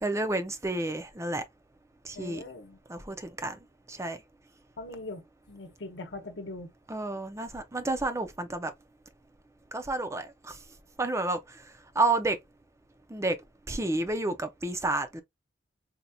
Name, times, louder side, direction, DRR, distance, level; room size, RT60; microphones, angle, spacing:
voice 1, 0.0-1.4 2.0-2.4 2.9-3.6 3.9-4.2 6.9-8.7 9.7-10.6 11.0-11.6 12.0-12.4 13.1-13.4 13.7-15.2, right 2 dB, 15° right, 0.5 m, -30 dB
voice 2, 2.1-2.8 4.8-5.2 5.5-6.7, left 2 dB, 65° left, 0.9 m, -41 dB
4.2 x 2.8 x 2.3 m
head